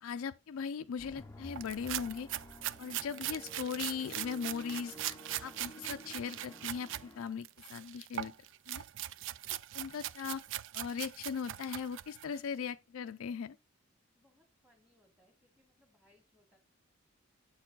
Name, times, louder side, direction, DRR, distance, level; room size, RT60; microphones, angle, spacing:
voice 1, 0.0-2.3 2.8-8.3 8.7-8.8 9.5-10.4 10.7-13.6, left 6 dB, 80° left, 0.4 m, -39 dB
sound 1, 1.0-7.2, equal, 15° left, 0.5 m, -52 dB
sound 2, 1.6-7.0 7.4-12.4, right 13 dB, 60° right, 0.3 m, -41 dB
voice 2, 14.1-16.6, left 1 dB, 5° right, 1.8 m, -70 dB
8.2 x 4.5 x 3.8 m
head